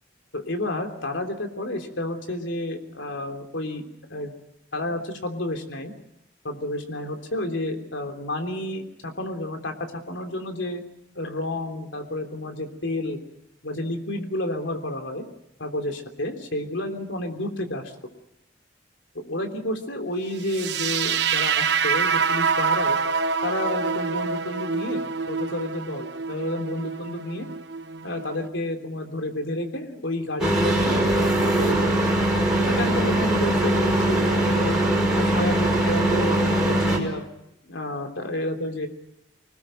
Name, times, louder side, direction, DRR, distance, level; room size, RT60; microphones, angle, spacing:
voice 1, 0.3-4.3 4.7-5.9 6.4-10.8 11.1-13.2 13.6-15.2 15.6-17.8 19.1-23.0 23.4-25.0 25.3-27.5 28.0-32.0 32.6-34.8 35.1-37.2 37.7-38.9, left 1 dB, 85° left, 5 dB, 3.3 m, -30 dB
sound 1, 20.5-28.5, right 5 dB, 65° right, 1.2 m, -26 dB
sound 2, 30.4-37.0, right 1 dB, 5° right, 5.4 m, -21 dB
25.5 x 19.5 x 7.7 m, 0.88 s
head